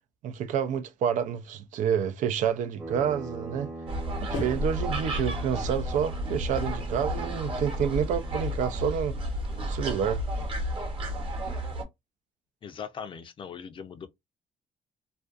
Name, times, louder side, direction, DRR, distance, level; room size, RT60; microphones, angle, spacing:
voice 1, 0.2-3.7 4.2-9.2 9.6-10.2, right 8 dB, 75° right, 0.4 m, -28 dB
sound 1, 2.8-8.6, right 2 dB, 10° right, 0.7 m, -42 dB
sound 2, 3.6-3.7 4.3-5.5 7.2-7.4 7.7-8.8 9.2-10.6, left 4 dB, 85° left, 0.7 m, -44 dB
sound 3, 3.9-11.8, equal, 40° right, 0.9 m, -32 dB
voice 2, 12.6-14.1, left 7 dB, 40° left, 0.5 m, -40 dB
2.4 x 2.2 x 2.4 m
cardioid pair, 120°, 13 cm